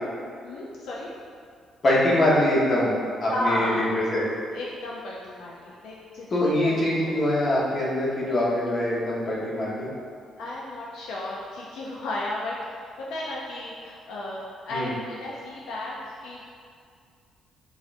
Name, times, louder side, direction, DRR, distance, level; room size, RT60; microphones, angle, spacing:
voice 1, 0.4-1.1 3.3-3.8 4.5-6.8 7.0-7.1 10.4-12.6 13.0-16.4, left 1 dB, 85° left, -4 dB, 0.4 m, -33 dB
voice 2, 1.8-2.9 3.2-4.3 6.3-9.9 14.7-14.9, left 1 dB, 40° left, -6 dB, 1.1 m, -23 dB
5.0 x 2.4 x 2.5 m, 2.2 s
cardioid pair, 90°, 0 cm